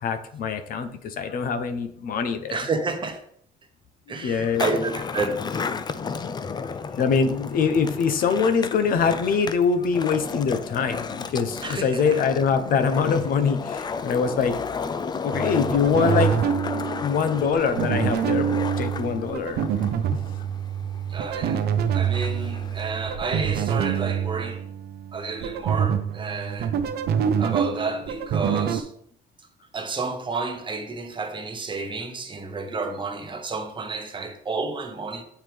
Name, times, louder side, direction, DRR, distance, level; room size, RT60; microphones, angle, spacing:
voice 1, 0.0-2.6 4.2-4.6 7.0-14.6 15.2-16.3 17.0-20.2, left 6 dB, 60° left, 0.8 m, -24 dB
voice 2, 2.5-3.2 4.1-5.7 11.6-12.0 21.1-24.7 25.1-26.7 27.4-28.9 29.7-35.2, right 3 dB, 30° right, 1.0 m, -30 dB
Skateboard, 4.4-23.1, left 5 dB, 25° left, 0.4 m, -33 dB
sound 1, 15.3-28.8, right 8 dB, 70° right, 0.6 m, -26 dB
7.6 x 4.6 x 3.4 m
cardioid pair, 110°, 17 cm